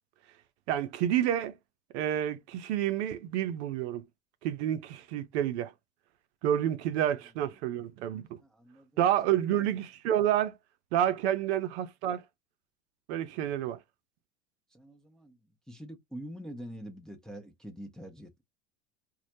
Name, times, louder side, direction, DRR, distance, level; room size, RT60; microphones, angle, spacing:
voice 1, 0.7-1.5 1.9-4.0 4.4-5.7 6.4-8.4 9.0-10.5 10.9-12.2 13.1-13.8, right 11 dB, 60° right, 0.6 m, -29 dB
voice 2, 8.4-9.0 13.3-13.6 14.7-15.4 15.7-18.4, equal, ahead, 0.4 m, -45 dB
2.2 x 2.0 x 2.7 m
hypercardioid pair, 80°, 38 cm